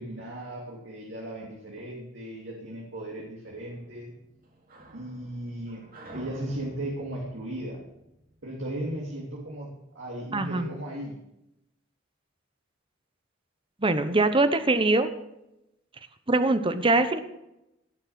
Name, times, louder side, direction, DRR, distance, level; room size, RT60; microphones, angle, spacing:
voice 1, 0.0-4.1 4.9-7.9 8.4-11.2, right 1 dB, 70° right, -3 dB, 3.1 m, -36 dB
sound 1, 3.5-8.9, right 1 dB, 45° right, 2.8 m, -49 dB
voice 2, 10.3-10.7 13.8-15.1 16.3-17.2, right 2 dB, 25° right, 10 dB, 1.0 m, -23 dB
17.5 x 6.5 x 7.4 m, 0.86 s
head